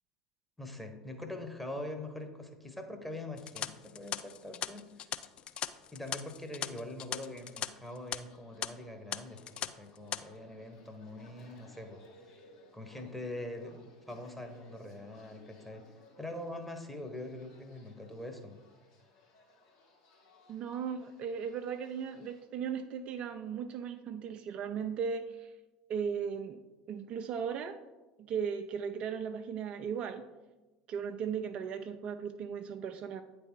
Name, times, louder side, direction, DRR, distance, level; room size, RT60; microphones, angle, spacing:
voice 1, 0.6-5.1 5.9-12.0 12.7-15.8 16.2-18.6, left 1 dB, 5° left, 4 dB, 1.0 m, -43 dB
sound 1, 3.4-7.7 8.0-8.2 8.6-8.7 9.1-9.7 10.0-10.2, left 10 dB, 40° left, 0.3 m, -38 dB
sound 2, 6.7-22.4, left 2 dB, 60° left, 2.0 m, -61 dB
voice 2, 20.5-25.5 25.9-26.6 26.9-27.8 28.3-30.2 30.9-33.2, right 7 dB, 45° right, 7 dB, 0.4 m, -37 dB
8.8 x 3.3 x 4.4 m, 1.1 s
figure-of-eight pair, 70°, 3 cm